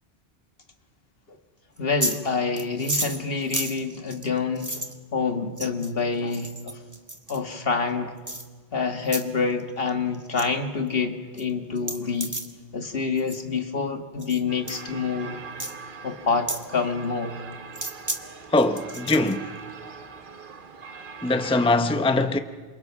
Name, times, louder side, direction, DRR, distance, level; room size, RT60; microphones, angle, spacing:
voice 1, 1.8-4.8 5.1-6.8 7.3-8.2 8.7-12.4 12.7-15.4 16.0-17.3, left 4 dB, 60° left, 1.9 m, -27 dB
sound 1, 1.8-2.2 2.6-5.0 5.6-5.9 6.3-7.4 8.3-8.5 9.1-9.2 9.6-9.9 10.1-10.5 10.9-11.0 11.4-11.5 11.8-12.5 13.2-13.4 14.2-14.4 14.7-14.8 15.6-15.7 16.5-16.7 17.7-18.2 18.6-19.3, right 1 dB, 15° right, 1.4 m, -32 dB
sound 2, 14.5-21.7, right 5 dB, 50° right, 1.2 m, -42 dB
voice 2, 18.5-19.5 21.2-22.4, left 2 dB, 5° left, 0.7 m, -22 dB
28.5 x 27.0 x 6.0 m
omnidirectional pair, 1.1 m